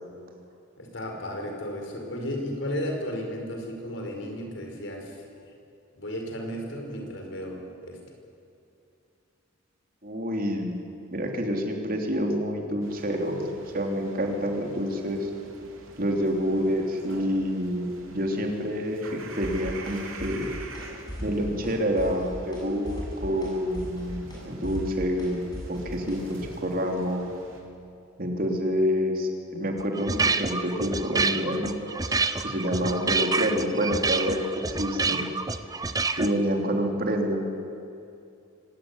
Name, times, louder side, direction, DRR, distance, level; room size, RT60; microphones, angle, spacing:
voice 1, 0.8-5.2 6.0-8.0, equal, 65° left, 2 dB, 5.3 m, -34 dB
voice 2, 10.0-13.5 13.7-15.3 16.0-20.5 21.2-27.3 28.2-34.4 34.8-35.2 36.2-37.4, equal, 45° right, 2 dB, 3.4 m, -28 dB
sound 1, 12.8-27.6, right 3 dB, 90° right, 4.0 m, -47 dB
sound 2, 19.4-19.9 20.2-20.8 21.1-21.7 22.0-22.6 22.9-26.5, equal, 20° left, 7.5 m, -37 dB
sound 3, 29.8-36.3, right 4 dB, 20° right, 0.8 m, -28 dB
24.5 x 18.5 x 9.9 m, 2.6 s
head